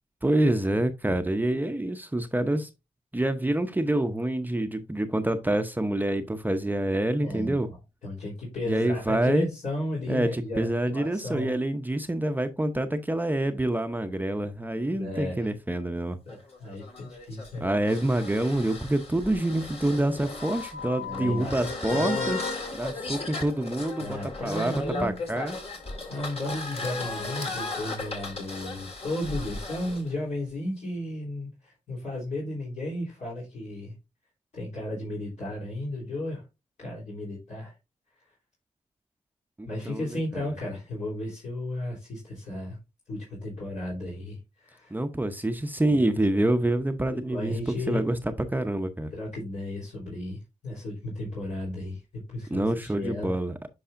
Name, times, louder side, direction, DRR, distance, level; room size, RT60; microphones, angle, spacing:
voice 1, 0.2-2.7 3.1-7.7 8.7-9.5 10.1-16.2 17.6-22.4 22.7-25.6 39.6-40.4 44.9-48.2 48.5-49.1 52.5-53.5, right 1 dB, 15° right, 0.7 m, -27 dB
voice 2, 7.2-7.8 8.0-11.6 14.9-15.5 16.3-17.7 21.0-22.3 24.0-25.1 26.1-34.0 34.5-36.4 36.8-37.7 39.7-42.8 43.1-45.0 45.9-46.4 47.3-48.0 49.1-52.0 52.3-53.3, left 1 dB, 70° left, 3.5 m, -34 dB
sound 1, 16.3-30.0, left 3 dB, 50° left, 2.1 m, -35 dB
10.0 x 4.8 x 2.5 m
cardioid pair, 70°, 13 cm